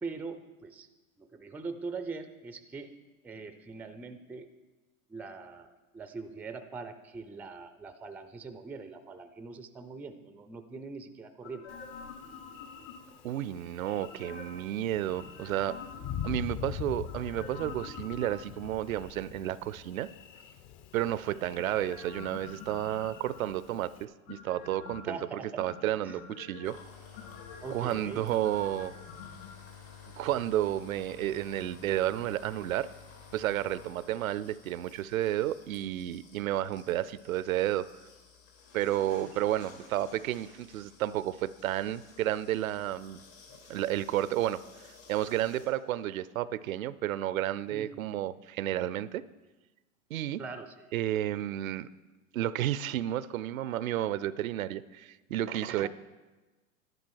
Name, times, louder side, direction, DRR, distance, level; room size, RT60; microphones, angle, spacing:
voice 1, 0.0-0.9 1.2-2.9 3.2-4.5 5.1-11.7 25.1-25.5 26.0-26.1 27.6-28.3 39.2-39.3 47.7-47.9 50.4-50.9 55.7-55.9, right 4 dB, 5° right, 10 dB, 0.4 m, -42 dB
sound 1, 11.4-13.3 14.0-14.7 15.2-16.6 17.0-18.7 21.5-23.7 24.3-25.2 25.6-26.7 27.1-29.5 29.8-29.9, left 6 dB, 60° left, 3.7 m, -47 dB
Thunder, 11.7-24.1, left 9 dB, 40° left, 0.8 m, -44 dB
voice 2, 13.2-15.8 16.2-20.1 20.9-26.8 27.7-28.9 30.2-32.9 33.3-37.9 38.7-43.2 43.7-44.6 45.1-49.2 50.1-50.4 50.9-51.9 52.3-55.9, right 13 dB, 75° right, 18 dB, 0.6 m, -31 dB
sound 2, 26.6-45.7, left 6 dB, 75° left, 4.5 m, -53 dB
11.0 x 10.5 x 4.7 m, 1.2 s
hypercardioid pair, 105°, 41 cm